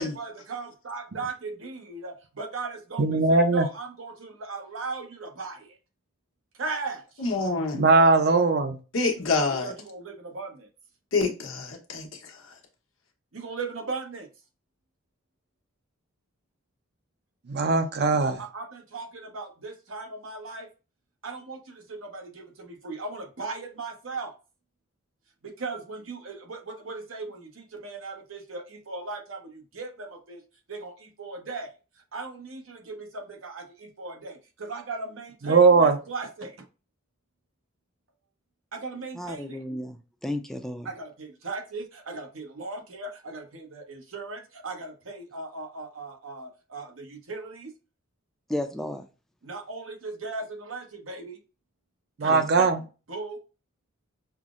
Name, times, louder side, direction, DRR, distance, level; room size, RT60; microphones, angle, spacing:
voice 1, 0.0-5.8 6.6-7.2 9.6-10.7 13.3-14.3 18.0-20.7 21.2-24.3 25.4-30.4 30.7-31.7 32.1-36.6 38.7-39.6 40.8-47.7 49.4-51.4 52.2-52.7 53.1-53.4, right 3 dB, 80° right, 0.9 m, -38 dB
voice 2, 3.0-3.7 7.7-8.8 17.5-18.4 35.4-36.0 52.2-52.8, right 3 dB, 55° right, 0.6 m, -20 dB
voice 3, 7.2-7.8 8.9-9.7 11.1-12.4, left 3 dB, 90° left, 0.9 m, -27 dB
voice 4, 39.1-40.9 48.5-49.0 52.2-52.4, left 1 dB, ahead, 0.3 m, -33 dB
5.6 x 2.0 x 2.4 m
head